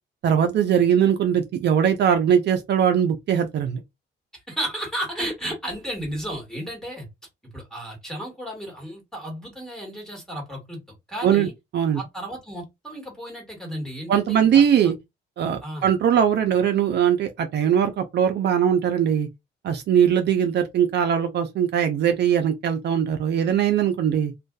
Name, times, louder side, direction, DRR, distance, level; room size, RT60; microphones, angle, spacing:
voice 1, 0.2-3.8 11.2-12.0 14.1-15.0 15.4-19.3 19.6-24.3, right 8 dB, 60° right, 0.4 m, -21 dB
voice 2, 4.3-7.1 7.4-10.8 11.1-11.5 11.9-14.6 15.6-15.9, right 1 dB, 5° left, 1.5 m, -33 dB
2.5 x 2.2 x 2.2 m
cardioid pair, 90°, 20 cm